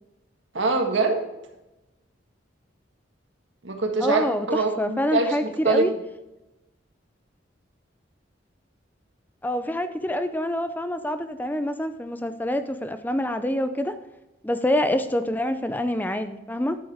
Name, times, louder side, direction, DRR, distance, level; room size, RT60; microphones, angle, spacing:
voice 1, 0.5-1.3 3.6-5.9, right 3 dB, 80° right, 4 dB, 1.7 m, -24 dB
voice 2, 4.0-5.9 9.4-13.9 14.4-16.8, left 1 dB, 10° left, 9 dB, 0.5 m, -26 dB
10.5 x 8.4 x 3.5 m, 0.96 s
head